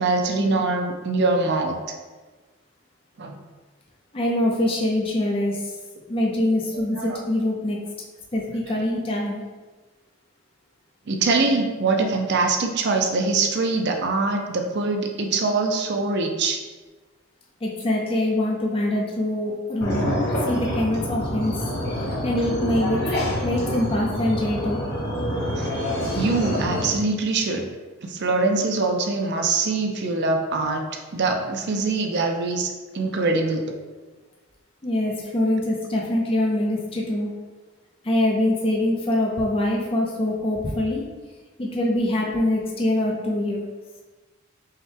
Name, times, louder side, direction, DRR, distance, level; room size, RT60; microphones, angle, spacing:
voice 1, 0.0-1.8 3.2-3.4 6.9-7.2 11.1-16.6 25.6-25.7 26.1-27.7 28.0-30.8 31.1-33.6, right 3 dB, 50° right, 3 dB, 0.5 m, -23 dB
voice 2, 4.1-5.7 6.1-7.8 8.3-9.4 17.6-20.0 20.4-21.5 22.0-23.0 23.4-24.8 34.8-37.3 38.0-41.0 41.6-43.6, left 1 dB, 25° left, -2 dB, 0.5 m, -24 dB
sound 1, 19.8-26.9, equal, 50° left, 1.1 m, -26 dB
5.5 x 2.2 x 3.3 m, 1.3 s
head